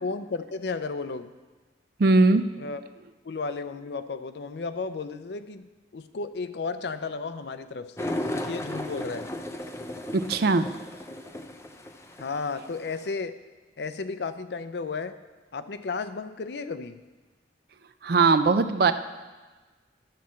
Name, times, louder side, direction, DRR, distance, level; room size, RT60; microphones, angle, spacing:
voice 1, 0.0-1.3 2.6-2.8 3.2-9.3 12.2-13.3 13.8-15.2 15.5-17.0, left 4 dB, 65° left, 11 dB, 0.5 m, -33 dB
voice 2, 2.0-2.4 10.1-10.7 18.0-18.9, right 3 dB, 55° right, 10 dB, 0.5 m, -20 dB
sound 1, 8.0-13.1, left 1 dB, 15° left, 0.5 m, -35 dB
11.5 x 4.2 x 7.4 m, 1.3 s
head